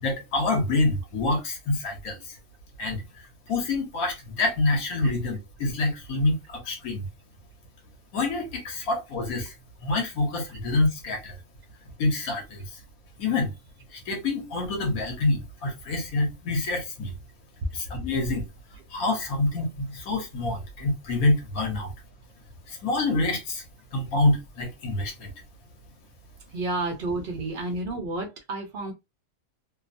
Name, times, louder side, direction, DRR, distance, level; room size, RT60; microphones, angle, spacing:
voice 1, 0.0-2.4 2.8-3.0 3.5-7.0 8.1-9.5 9.8-11.3 12.0-12.8 13.2-13.5 13.9-17.1 17.7-18.4 18.9-21.9 22.7-23.6 23.9-25.3, left 2 dB, 65° left, 1.2 m, -26 dB
voice 2, 26.5-28.9, right 2 dB, 75° right, 0.4 m, -31 dB
2.8 x 2.0 x 2.5 m
omnidirectional pair, 1.7 m